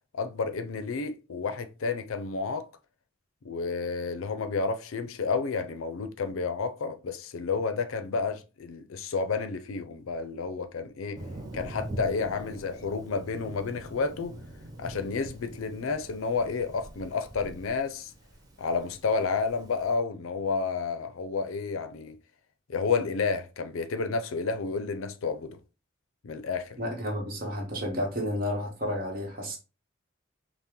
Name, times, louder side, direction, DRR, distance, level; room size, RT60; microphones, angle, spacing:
voice 1, 0.1-2.7 3.4-11.2 11.5-14.4 14.8-18.1 18.6-22.2 22.7-25.6 26.2-26.8, left 4 dB, 90° left, 0.5 m, -31 dB
Thunder, 11.1-19.9, right 1 dB, 20° right, 0.6 m, -43 dB
voice 2, 26.8-29.6, equal, 45° right, 1.1 m, -31 dB
5.5 x 2.1 x 2.9 m
head